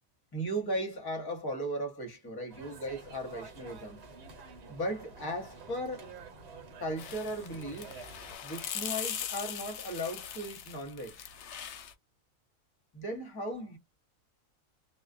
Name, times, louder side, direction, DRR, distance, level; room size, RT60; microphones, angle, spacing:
voice 1, 0.3-4.0 4.7-6.1 6.8-7.9 8.4-11.3 12.9-13.8, right 1 dB, 20° left, 0.7 m, -37 dB
sound 1, 2.5-8.4, right 4 dB, 55° right, 1.1 m, -49 dB
sound 2, 7.0-11.9, left 9 dB, 65° left, 0.8 m, -40 dB
2.4 x 2.2 x 2.5 m
omnidirectional pair, 1.4 m